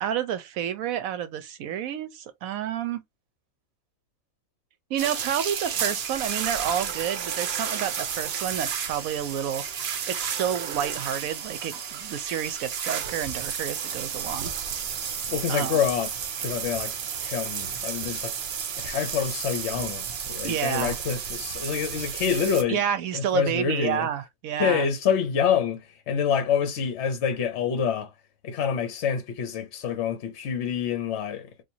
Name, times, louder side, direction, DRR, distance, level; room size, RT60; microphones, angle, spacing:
voice 1, 0.0-3.0 4.9-9.6 10.1-14.5 15.5-15.8 20.4-21.0 22.7-24.9, right 9 dB, 80° right, 1.0 m, -29 dB
sound 1, 5.0-22.6, right 7 dB, 55° right, 0.8 m, -32 dB
voice 2, 15.3-16.1 16.4-16.9 17.2-18.3 18.8-22.8 23.1-24.1 24.6-28.1 28.4-31.5, left 7 dB, 60° left, 0.9 m, -27 dB
4.3 x 2.5 x 2.7 m
omnidirectional pair, 1.5 m